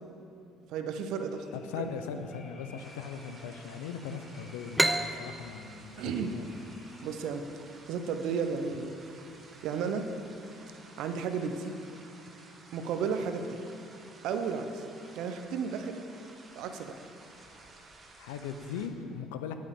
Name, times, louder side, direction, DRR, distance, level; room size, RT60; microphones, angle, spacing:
voice 1, 0.7-1.5 1.8-1.9 6.0-6.3 7.0-7.5 7.9-8.9 9.6-10.1 11.0-11.7 12.7-13.6 14.2-14.8 15.1-16.0 16.5-17.0, right 6 dB, 70° right, 7 dB, 0.6 m, -33 dB
sound 1, 1.3-7.2, left 2 dB, 45° left, 1.3 m, -56 dB
voice 2, 1.5-6.5 18.2-19.5, left 7 dB, 85° left, 8 dB, 0.5 m, -39 dB
sound 2, 2.8-18.9, right 3 dB, 35° right, 1.1 m, -54 dB
sound 3, 4.8-8.2, right 1 dB, 10° right, 0.4 m, -32 dB
9.5 x 8.3 x 3.6 m, 2.6 s
supercardioid pair, 70°, 0 cm